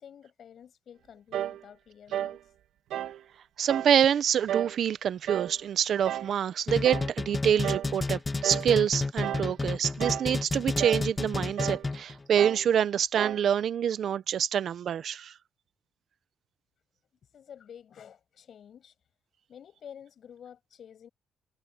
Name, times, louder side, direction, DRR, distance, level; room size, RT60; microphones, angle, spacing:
voice 1, 0.0-2.4 17.3-18.9 19.5-21.1, left 8 dB, 60° left, 6.6 m, -50 dB
sound 1, 1.3-1.6 2.1-2.4 2.9-3.2 3.7-4.0 4.5-4.8 5.3-5.6 6.1-6.3 6.8-7.1 7.6-7.9 8.4-8.7 9.2-9.5 10.0-10.3 10.8-11.1 11.6-11.9 12.4-12.7 13.2-13.5, right 11 dB, 85° right, 2.0 m, -33 dB
voice 2, 3.6-15.3, right 9 dB, 65° right, 0.9 m, -26 dB
sound 2, 6.7-12.2, left 3 dB, 20° left, 1.7 m, -31 dB
cardioid pair, 90°, 0 cm